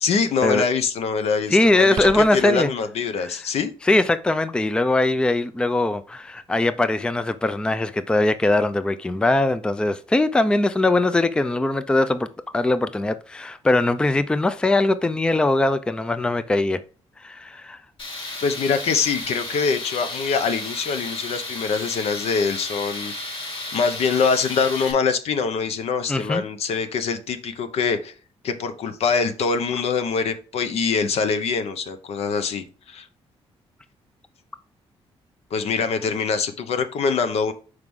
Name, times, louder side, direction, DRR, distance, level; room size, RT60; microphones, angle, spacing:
voice 1, 0.0-3.7 18.4-23.1 23.7-28.1 28.4-33.1 35.5-37.5, left 5 dB, 75° left, 1.0 m, -24 dB
voice 2, 1.5-2.7 3.2-3.4 3.8-12.3 12.5-16.8 17.2-17.8 26.1-26.4, left 2 dB, 10° left, 0.4 m, -21 dB
sound 1, 2.0-2.4, right 8 dB, 80° right, 0.5 m, -34 dB
Tools, 18.0-24.9, left 2 dB, 55° left, 3.0 m, -33 dB
6.2 x 4.9 x 3.6 m
cardioid pair, 135°, 11 cm